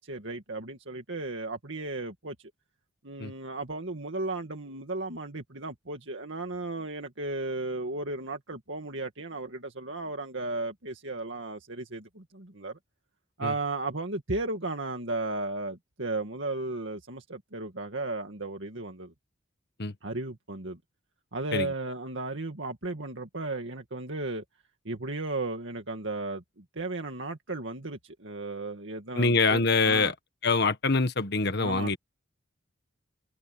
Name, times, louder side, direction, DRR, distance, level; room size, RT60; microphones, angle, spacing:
voice 1, 0.0-2.4 3.0-12.8 13.4-19.1 20.0-20.8 21.3-24.4 24.8-30.1 31.6-32.0, right 2 dB, 70° right, 2.2 m, -35 dB
voice 2, 29.1-30.1 30.4-32.0, left 4 dB, 55° left, 1.5 m, -24 dB
head